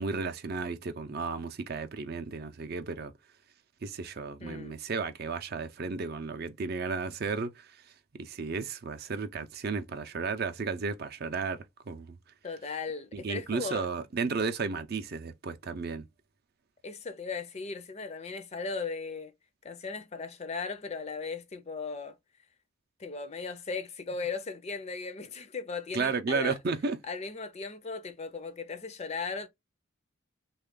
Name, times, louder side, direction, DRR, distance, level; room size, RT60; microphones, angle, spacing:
voice 1, 0.0-3.1 3.8-7.7 8.2-12.2 13.1-16.0 25.9-27.0, right 4 dB, 45° right, 0.5 m, -33 dB
voice 2, 4.4-4.8 12.4-13.9 16.8-19.3 19.6-22.2 23.0-26.6 27.0-29.5, left 4 dB, 30° left, 0.5 m, -37 dB
3.2 x 2.4 x 3.6 m
head